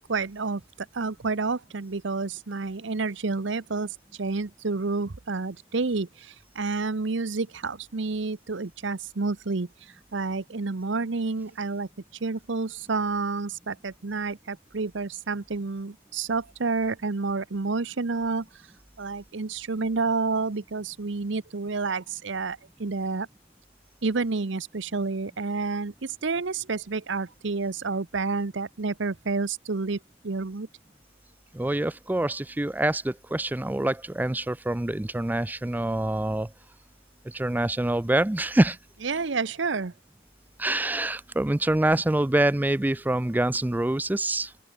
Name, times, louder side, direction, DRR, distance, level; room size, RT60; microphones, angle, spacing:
voice 1, 0.1-0.6 0.9-3.9 4.2-9.7 10.1-11.9 12.2-18.5 19.0-23.3 24.0-30.0 30.2-30.7 39.0-39.9, right 4 dB, 65° right, 0.8 m, -29 dB
voice 2, 31.5-36.5 37.3-38.8 40.6-44.6, right 1 dB, 10° right, 0.4 m, -25 dB
open air
head